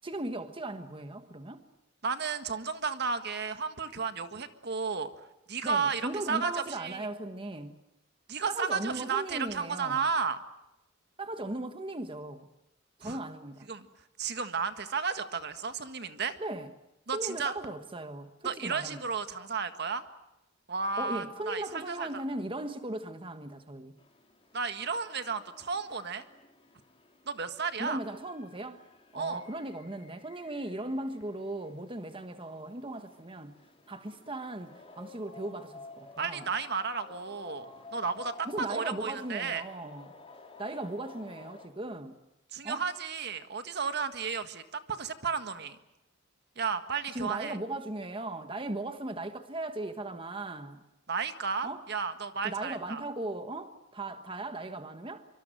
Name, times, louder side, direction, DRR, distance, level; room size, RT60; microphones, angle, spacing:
voice 1, 0.0-1.6 5.6-7.8 8.5-10.0 11.2-12.5 13.0-13.7 16.4-16.7 17.1-19.0 21.0-24.0 27.8-28.8 29.1-33.6 33.9-36.5 38.4-40.1 40.6-42.2 42.6-42.8 47.1-50.8 51.6-51.8 52.4-55.2, right 2 dB, 25° right, 1.4 m, -38 dB
voice 2, 2.0-5.1 5.5-6.0 6.3-7.1 8.3-10.4 13.0-13.2 13.7-13.9 14.2-16.4 17.1-17.5 18.4-20.0 20.7-22.1 24.5-26.2 27.3-28.0 29.1-29.4 36.2-39.6 42.5-45.8 46.6-47.6 51.1-53.0, right 5 dB, 55° right, 1.7 m, -33 dB
sound 1, 24.0-41.7, left 3 dB, 30° left, 3.7 m, -53 dB
25.5 x 24.5 x 7.8 m
head